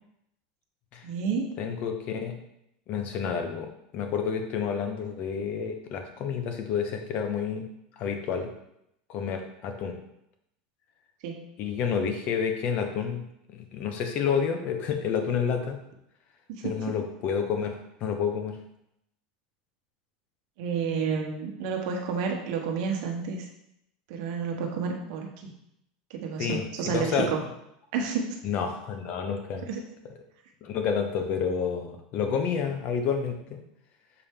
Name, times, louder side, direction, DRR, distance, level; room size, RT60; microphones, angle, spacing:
voice 1, 1.0-1.5 11.2-11.5 16.5-16.8 20.6-23.5 24.1-25.5 26.1-27.4 27.9-28.4 29.6-29.8, right 5 dB, 60° right, 2 dB, 1.1 m, -30 dB
voice 2, 1.6-2.4 2.9-3.7 3.9-7.7 8.0-8.5 9.1-10.0 11.6-13.2 13.5-15.8 16.6-18.6 26.4-26.6 26.9-27.3 28.4-29.7 30.6-33.6, left 6 dB, 40° left, 5 dB, 0.9 m, -29 dB
6.9 x 4.3 x 3.6 m, 0.80 s
supercardioid pair, 160°, 4 cm